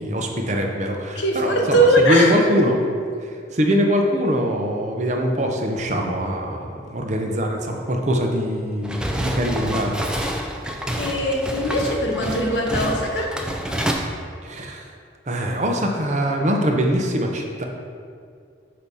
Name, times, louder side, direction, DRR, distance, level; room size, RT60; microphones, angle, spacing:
voice 1, 0.0-2.8 3.5-10.4 14.4-14.9 15.3-17.6, equal, 40° right, 2 dB, 0.7 m, -23 dB
voice 2, 1.1-2.6 11.0-13.3, right 1 dB, 85° left, 0 dB, 1.1 m, -20 dB
sound 1, 8.8-13.9, right 1 dB, 5° right, 0.4 m, -27 dB
8.1 x 2.9 x 5.4 m, 2.2 s
head